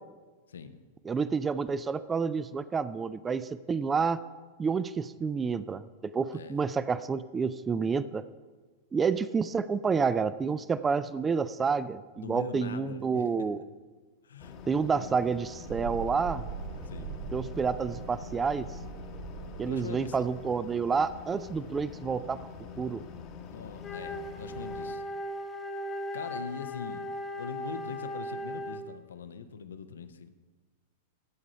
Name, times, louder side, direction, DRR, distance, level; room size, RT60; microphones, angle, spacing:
voice 1, 0.5-0.8 6.3-6.7 12.1-13.5 14.2-14.6 14.9-15.5 16.8-17.2 19.6-20.2 23.5-25.0 26.1-27.1 27.4-30.3, left 6 dB, 75° left, 10 dB, 0.6 m, -42 dB
voice 2, 1.1-4.2 4.6-8.2 8.9-13.6 14.7-16.4 17.3-18.7 19.6-22.4 22.8-23.0, right 5 dB, 20° right, 15 dB, 0.3 m, -29 dB
sound 1, 14.4-24.9, left 6 dB, 40° left, 1.0 m, -46 dB
Thunderstorm, 15.7-23.1, right 6 dB, 55° right, 0.7 m, -42 dB
Wind instrument woodwind instrument, 23.8-29.0, left 1 dB, 15° left, 0.8 m, -37 dB
13.5 x 4.9 x 5.6 m, 1.3 s
figure-of-eight pair, 95°, 0 cm